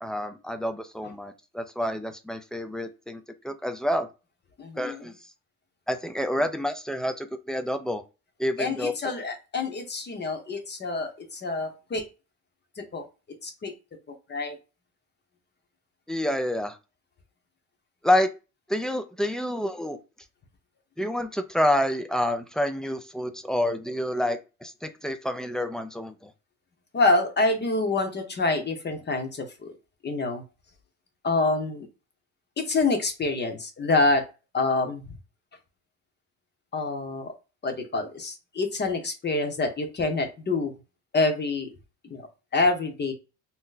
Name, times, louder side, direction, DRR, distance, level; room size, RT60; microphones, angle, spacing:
voice 1, 0.0-4.1 4.8-5.1 5.9-8.0 8.4-9.1 16.1-16.8 18.0-18.3 18.7-20.0 21.0-26.3, left 1 dB, ahead, 8 dB, 0.3 m, -28 dB
voice 2, 4.6-5.0 8.6-12.1 12.8-13.0 13.4-13.7 14.3-14.6 26.9-29.7 30.0-30.4 31.2-31.9 32.6-34.2 34.5-35.0 36.7-37.3 37.6-40.7 41.1-41.7 42.0-42.3 42.5-43.1, left 3 dB, 30° left, 6 dB, 0.8 m, -26 dB
2.8 x 2.1 x 3.7 m, 0.30 s
cardioid pair, 90°, 33 cm